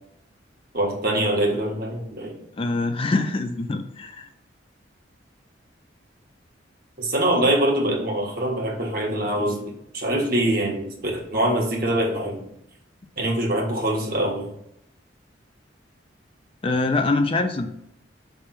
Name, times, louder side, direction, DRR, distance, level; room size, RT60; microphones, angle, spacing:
voice 1, 0.7-2.3 7.0-9.6 9.9-12.4 13.2-14.5, right 1 dB, 50° right, 0 dB, 1.4 m, -24 dB
voice 2, 2.6-4.3 16.6-17.7, left 3 dB, 30° left, 6 dB, 0.4 m, -24 dB
5.6 x 3.4 x 5.7 m, 0.79 s
head